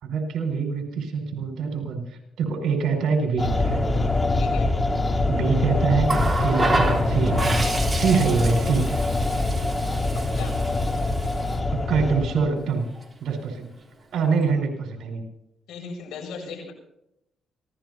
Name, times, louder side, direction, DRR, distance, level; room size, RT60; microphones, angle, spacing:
voice 1, 0.0-3.8 5.2-7.6 7.9-8.9 11.7-12.9 13.2-13.7 14.1-15.2, right 5 dB, 70° right, 3 dB, 5.9 m, -25 dB
sound 1, 3.4-12.6, left 2 dB, 20° left, 3.5 m, -24 dB
voice 2, 4.4-4.7 10.1-10.6 15.7-16.7, left 5 dB, 85° left, 2 dB, 7.1 m, -37 dB
Water tap faucet, 6.0-11.6 12.8-13.0, right 2 dB, 20° right, 3.7 m, -29 dB
25.0 x 17.5 x 2.8 m, 0.81 s
cardioid pair, 90°, 0 cm